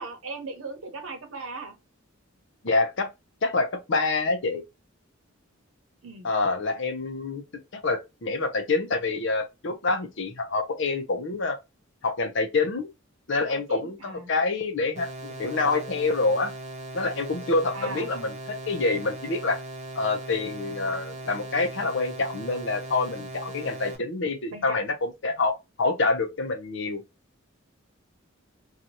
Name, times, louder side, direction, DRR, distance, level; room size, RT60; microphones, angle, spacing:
voice 1, 0.0-1.8 6.0-6.3 13.5-14.3 17.7-18.1 24.5-24.8, right 3 dB, 80° right, 0.9 m, -38 dB
voice 2, 2.6-3.1 3.4-4.6 6.2-7.4 7.8-11.6 12.0-12.9 13.3-16.5 16.9-19.6 20.0-25.5 25.8-27.0, left 3 dB, 60° left, 0.6 m, -26 dB
sound 1, 14.9-23.9, right 1 dB, 35° right, 0.8 m, -39 dB
2.7 x 2.4 x 2.8 m
head